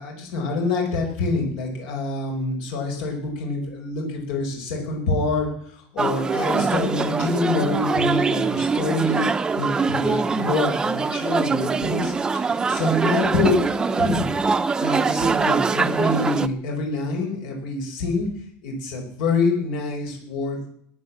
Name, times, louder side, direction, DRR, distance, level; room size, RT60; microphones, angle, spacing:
voice 1, 0.0-13.6 14.0-14.2 14.8-18.3 18.6-20.7, left 3 dB, 75° left, 1 dB, 5.1 m, -26 dB
sound 1, 6.0-16.5, right 4 dB, 15° right, 0.7 m, -23 dB
16.0 x 9.3 x 8.4 m, 0.64 s
cardioid pair, 150°, 5 cm